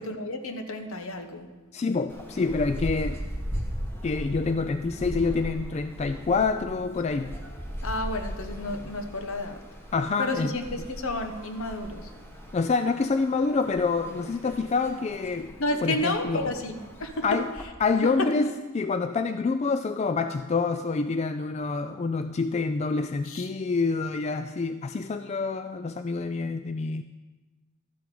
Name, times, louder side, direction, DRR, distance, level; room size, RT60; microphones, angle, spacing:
voice 1, 0.0-1.5 7.8-9.6 10.2-12.1 15.6-17.4 18.0-18.5 23.2-23.5, left 1 dB, 70° left, 6 dB, 1.1 m, -31 dB
voice 2, 1.7-3.2 4.0-7.4 9.9-10.5 12.5-15.5 15.8-16.5 17.2-17.5 17.8-27.0, left 4 dB, 30° left, 9 dB, 0.3 m, -27 dB
sound 1, 2.1-17.7, equal, 10° left, 1.2 m, -38 dB
12.5 x 7.8 x 5.3 m, 1.2 s
head